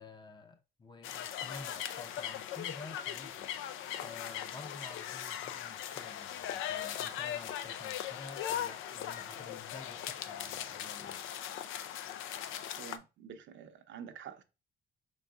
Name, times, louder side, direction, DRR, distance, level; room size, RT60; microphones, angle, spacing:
voice 1, 0.0-3.5 4.0-11.2, left 3 dB, 25° left, 0.6 m, -50 dB
sound 1, 1.0-13.0, left 10 dB, 85° left, 0.5 m, -39 dB
voice 2, 12.8-14.4, right 8 dB, 70° right, 0.7 m, -48 dB
4.6 x 3.9 x 2.3 m
cardioid pair, 90°, 20 cm